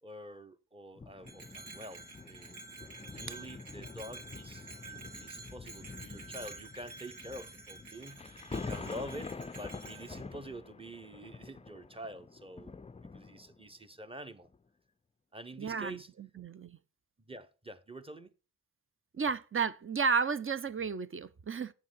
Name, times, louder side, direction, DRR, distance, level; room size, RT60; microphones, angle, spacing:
voice 1, 0.0-2.6 3.0-12.7 13.1-14.5 15.3-16.1 17.3-18.3, right 1 dB, 15° right, 1.1 m, -47 dB
sound 1, 1.0-13.7 14.4-14.6, left 4 dB, 15° left, 0.4 m, -46 dB
Bell, 1.2-10.2, right 3 dB, 65° right, 2.7 m, -49 dB
voice 2, 15.6-16.8 19.1-21.7, right 5 dB, 35° right, 0.7 m, -33 dB
8.6 x 7.4 x 4.7 m
supercardioid pair, 40°, 38 cm